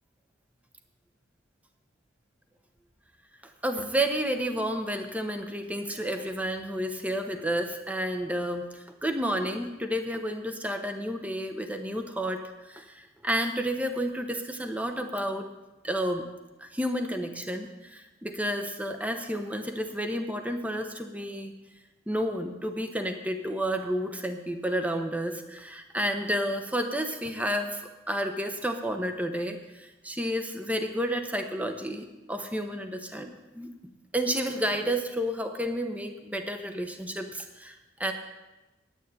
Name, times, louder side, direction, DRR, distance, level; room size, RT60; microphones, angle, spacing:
voice 1, 3.6-15.5 15.8-16.3 16.6-21.5 22.1-33.7 34.1-38.1, equal, 10° right, 5 dB, 1.0 m, -31 dB
9.3 x 9.1 x 9.9 m, 1.1 s
head